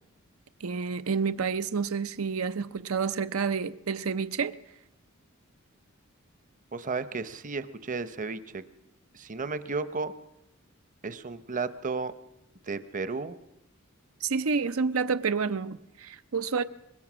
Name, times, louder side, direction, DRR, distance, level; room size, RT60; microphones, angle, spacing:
voice 1, 0.6-4.6 14.2-16.6, right 5 dB, 90° right, 0.7 m, -29 dB
voice 2, 6.7-8.6 9.1-10.1 11.0-12.1 12.6-13.4, right 4 dB, 40° right, 0.8 m, -33 dB
24.0 x 21.0 x 6.2 m
head